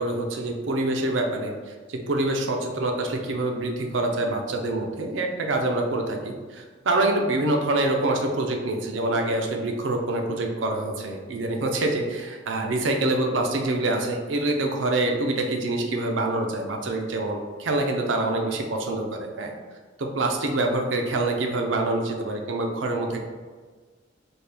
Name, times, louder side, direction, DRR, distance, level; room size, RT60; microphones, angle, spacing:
voice 1, 0.0-1.5 1.9-19.5 20.0-23.2, right 2 dB, 75° right, 3 dB, 0.5 m, -26 dB
4.2 x 2.2 x 3.3 m, 1.4 s
head